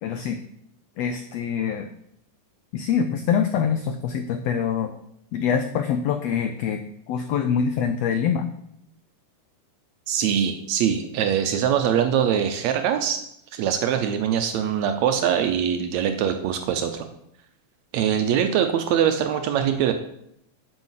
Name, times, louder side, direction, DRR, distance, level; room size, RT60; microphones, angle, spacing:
voice 1, 0.0-0.4 1.0-1.9 2.7-4.9 5.3-6.8 7.1-8.5, left 7 dB, 90° left, 8 dB, 1.4 m, -24 dB
voice 2, 10.1-13.2 13.5-17.1 17.9-19.9, right 9 dB, 75° right, 7 dB, 1.7 m, -23 dB
7.9 x 5.6 x 7.3 m, 0.75 s
omnidirectional pair, 3.6 m